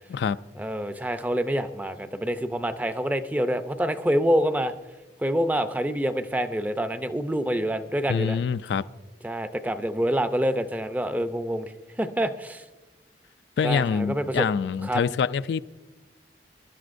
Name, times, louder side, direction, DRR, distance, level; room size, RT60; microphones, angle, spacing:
voice 1, 0.6-4.7 5.2-8.4 9.2-11.7 12.0-12.6 13.6-14.5 14.8-15.0, equal, 10° right, 10 dB, 0.5 m, -26 dB
voice 2, 8.1-8.9 13.6-15.6, left 6 dB, 70° left, 14 dB, 0.3 m, -25 dB
22.5 x 11.5 x 2.6 m, 1.2 s
head